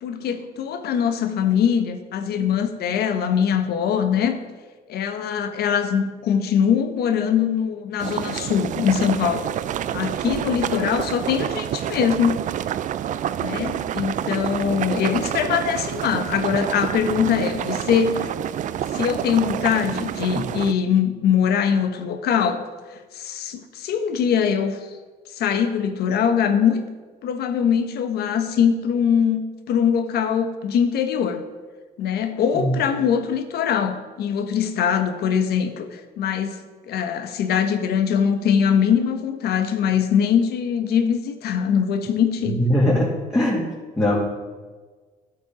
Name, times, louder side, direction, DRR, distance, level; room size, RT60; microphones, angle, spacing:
voice 1, 0.0-4.4 4.9-9.5 9.9-12.4 13.4-18.3 18.9-22.6 22.9-24.8 25.3-26.8 27.2-31.4 32.0-36.6 36.9-42.6, left 7 dB, 70° left, 8 dB, 1.2 m, -22 dB
sound 1, 8.0-20.7, right 10 dB, 50° right, 0.4 m, -28 dB
voice 2, 42.4-43.7 44.0-44.2, left 1 dB, 15° left, -6 dB, 2.4 m, -20 dB
11.5 x 8.1 x 5.1 m, 1.4 s
cardioid pair, 110°, 17 cm